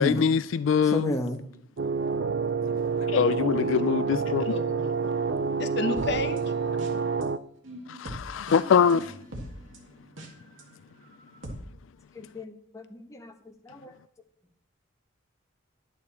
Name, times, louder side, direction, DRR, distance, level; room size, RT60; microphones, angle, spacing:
voice 1, 0.0-1.1 3.1-4.5 7.9-9.1, left 7 dB, 80° left, 0.3 m, -23 dB
voice 2, 0.8-1.4 12.1-13.3 13.6-13.9, left 1 dB, 15° left, 1.2 m, -32 dB
sound 1, 1.8-7.4, right 5 dB, 60° right, 0.4 m, -28 dB
voice 3, 4.5-4.9 5.6-6.4, left 2 dB, 60° left, 0.9 m, -31 dB
sound 2, 4.9-7.2 7.6-10.6 11.1-11.5, right 1 dB, 80° right, 2.1 m, -41 dB
10.5 x 8.5 x 4.3 m
head